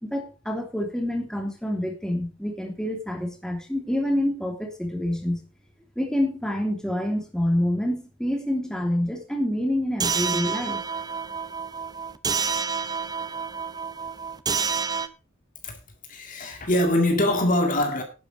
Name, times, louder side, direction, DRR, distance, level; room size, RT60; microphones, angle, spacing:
voice 1, 0.0-5.4 6.0-10.8, left 1 dB, 5° left, 2.9 m, -27 dB
sound 1, 10.0-15.1, right 5 dB, 20° right, 0.7 m, -28 dB
voice 2, 16.1-18.0, left 1 dB, 40° left, 2.0 m, -23 dB
11.5 x 9.7 x 4.9 m
head